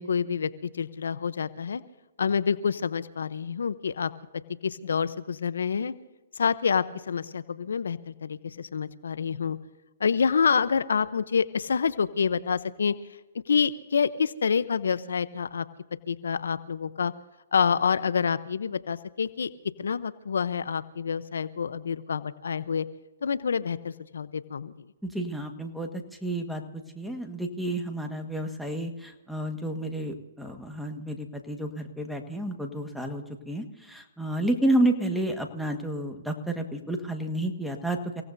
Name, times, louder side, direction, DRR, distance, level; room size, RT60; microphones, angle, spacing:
voice 1, 0.0-1.8 2.2-4.1 4.6-5.9 6.3-9.6 10.0-12.9 13.5-15.7 16.1-17.1 17.5-19.5 19.8-22.9 23.2-24.7, left 6 dB, 75° left, 15 dB, 0.8 m, -27 dB
voice 2, 25.0-38.2, right 1 dB, ahead, 4 dB, 1.6 m, -30 dB
30.0 x 17.5 x 2.7 m, 1.1 s
hypercardioid pair, 140°, 0 cm